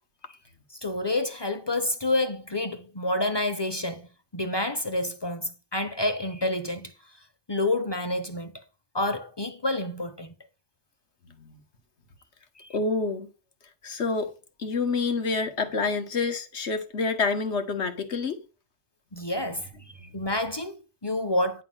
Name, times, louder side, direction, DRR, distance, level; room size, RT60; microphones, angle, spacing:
voice 1, 0.8-4.1 4.3-6.9 7.5-8.6 8.9-10.3 12.6-12.7 19.1-19.7 20.1-21.6, left 1 dB, 30° left, 0.6 m, -28 dB
voice 2, 12.7-13.3 13.8-14.3 14.6-18.4, left 4 dB, 85° left, 1.6 m, -27 dB
9.8 x 3.7 x 7.3 m
omnidirectional pair, 1.1 m